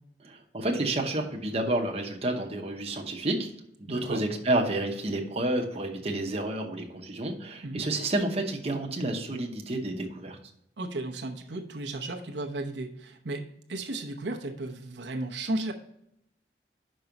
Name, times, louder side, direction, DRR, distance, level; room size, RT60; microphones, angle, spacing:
voice 1, 0.2-3.5 3.8-10.4, right 2 dB, 35° right, 2 dB, 0.9 m, -30 dB
voice 2, 3.9-4.2 7.6-7.8 10.8-15.7, right 2 dB, 85° right, 3 dB, 0.9 m, -34 dB
5.5 x 5.2 x 5.9 m, 0.76 s
head